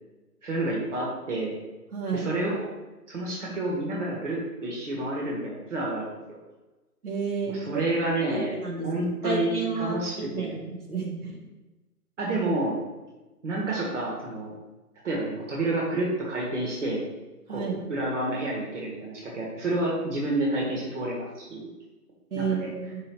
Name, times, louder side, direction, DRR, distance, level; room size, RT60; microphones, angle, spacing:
voice 1, 0.4-1.5 2.1-2.7 3.1-6.4 7.5-8.6 8.8-10.6 12.2-12.7 13.4-14.5 15.0-17.0 17.5-21.6 22.4-22.7, right 2 dB, 50° right, -3 dB, 1.8 m, -29 dB
voice 2, 1.9-2.3 7.0-7.6 8.3-10.0 10.3-11.4 17.5-17.8 22.3-23.0, right 4 dB, 70° right, -2 dB, 1.9 m, -31 dB
5.6 x 3.9 x 5.7 m, 1.1 s
hypercardioid pair, 165°, 47 cm